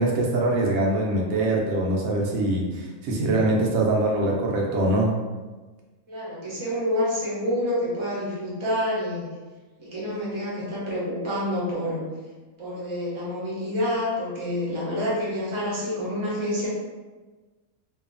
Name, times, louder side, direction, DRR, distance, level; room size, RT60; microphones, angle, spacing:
voice 1, 0.0-5.1, right 2 dB, 75° right, -1 dB, 1.0 m, -23 dB
voice 2, 6.1-9.3 9.8-12.0 12.6-16.7, left 1 dB, 30° right, -7 dB, 0.6 m, -28 dB
2.7 x 2.3 x 2.5 m, 1.3 s
omnidirectional pair, 1.5 m